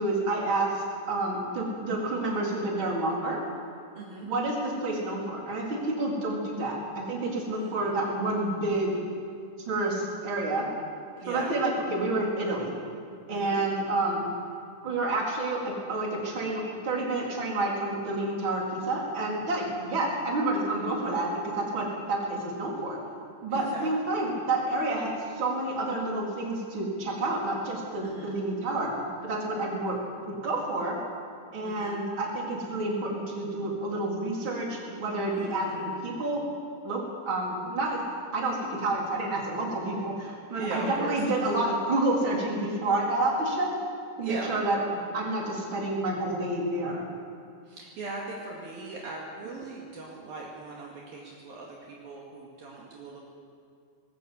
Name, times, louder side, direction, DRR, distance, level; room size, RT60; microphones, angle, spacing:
voice 1, 0.0-3.4 4.2-8.9 9.7-10.7 11.3-12.7 13.3-14.3 14.8-15.6 15.9-23.0 23.4-28.9 29.2-31.0 31.5-36.4 36.8-37.0 37.3-38.0 38.3-43.7 44.2-44.8 45.1-47.1, right 2 dB, 30° right, -2 dB, 4.3 m, -29 dB
voice 2, 4.0-4.3 7.5-8.1 11.2-11.6 13.3-13.6 19.6-19.9 23.5-24.2 28.0-28.4 31.6-32.0 35.3-36.2 40.5-41.3 41.5-41.6 44.2-44.5 47.7-53.2, right 3 dB, 60° right, -3 dB, 3.7 m, -40 dB
20.5 x 17.5 x 8.3 m, 2.3 s
omnidirectional pair, 4.9 m